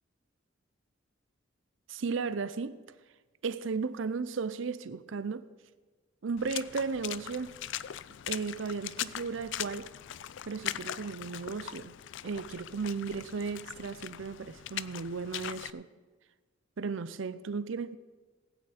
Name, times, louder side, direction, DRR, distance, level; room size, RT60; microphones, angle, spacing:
voice 1, 1.9-2.8 3.4-5.5 6.2-7.6 8.3-9.9 10.5-11.9 12.2-15.9 16.8-18.0, right 5 dB, 70° right, 0.5 m, -35 dB
Water / Splash splatter, 6.4-15.7, left 12 dB, 65° left, 0.4 m, -40 dB
19.0 x 8.9 x 4.2 m
head